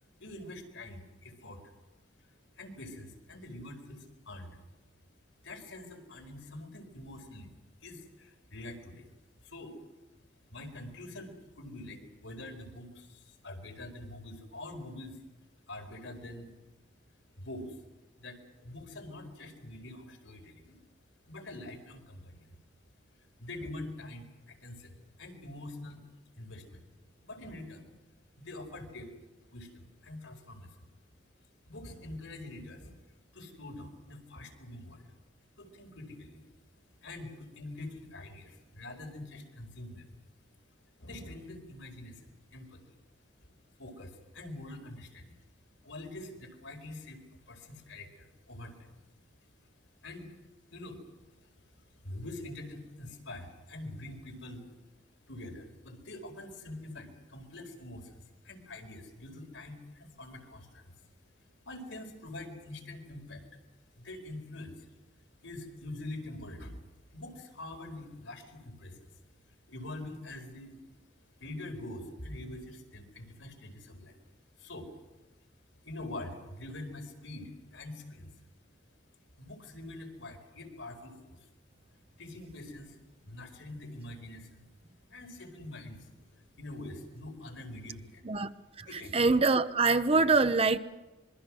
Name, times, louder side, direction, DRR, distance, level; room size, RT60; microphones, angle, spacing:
voice 1, 0.2-1.6 2.6-4.6 5.4-7.5 7.8-9.1 9.4-9.8 10.5-15.2 15.7-16.5 17.4-17.7 18.2-20.8 21.3-22.6 23.4-26.0 26.4-26.8 27.2-27.9 28.4-29.1 29.5-30.9 31.7-32.9 33.3-35.1 35.6-36.4 37.0-40.1 41.0-43.0 43.4-43.5 43.8-45.4 45.8-47.2 47.5-49.0 50.0-50.3 50.7-51.0 51.4-51.5 52.0-54.7 55.3-60.9 61.6-63.4 64.0-64.9 65.4-66.8 67.1-69.1 69.7-70.7 71.4-74.2 74.6-74.9 75.8-78.3 79.4-81.5 82.2-83.0 83.2-84.6 85.1-86.1 86.3-88.2 88.8-89.1, left 1 dB, 85° left, 3 dB, 4.8 m, -45 dB
voice 2, 88.8-90.8, right 3 dB, 30° right, 12 dB, 0.8 m, -25 dB
25.5 x 23.0 x 6.3 m, 1.1 s
head